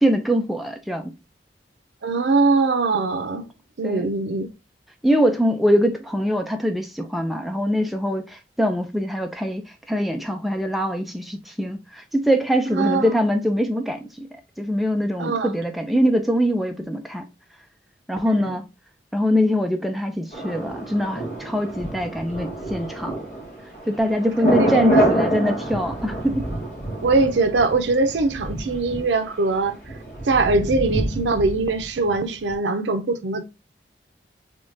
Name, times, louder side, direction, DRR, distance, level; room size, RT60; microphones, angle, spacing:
voice 1, 0.0-1.1 3.8-4.1 5.0-9.6 9.9-14.3 14.6-17.3 18.1-18.6 19.1-23.2 23.9-26.5, equal, ahead, 0.4 m, -23 dB
voice 2, 2.0-3.5 3.8-4.5 12.7-13.1 15.2-15.5 18.4-18.6 24.4-25.1 27.0-29.8 30.3-33.4, right 3 dB, 90° right, 0.5 m, -22 dB
Thunder, 20.3-32.2 32.5-32.6, right 1 dB, 40° left, 1.6 m, -27 dB
3.6 x 3.2 x 2.5 m
head